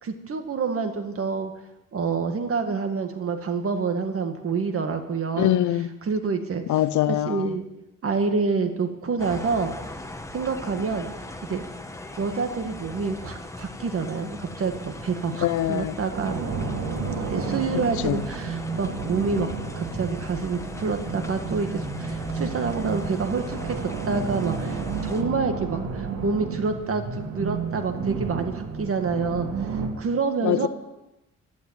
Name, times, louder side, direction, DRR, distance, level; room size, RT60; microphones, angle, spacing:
voice 1, 0.0-1.5 1.9-5.5 6.0-7.6 8.0-9.7 10.3-11.1 11.5-11.6 12.2-16.4 17.3-19.5 19.7-29.7 30.0-30.7, right 4 dB, 50° right, 2.0 m, -27 dB
voice 2, 5.4-5.9 6.7-7.5 15.4-15.9 17.7-18.2 30.4-30.7, left 12 dB, 70° left, 0.7 m, -24 dB
sound 1, 9.2-25.2, left 1 dB, 10° left, 1.4 m, -39 dB
sound 2, 16.1-29.9, right 5 dB, 80° right, 3.3 m, -31 dB
12.0 x 11.5 x 8.2 m
cardioid pair, 90°, 30 cm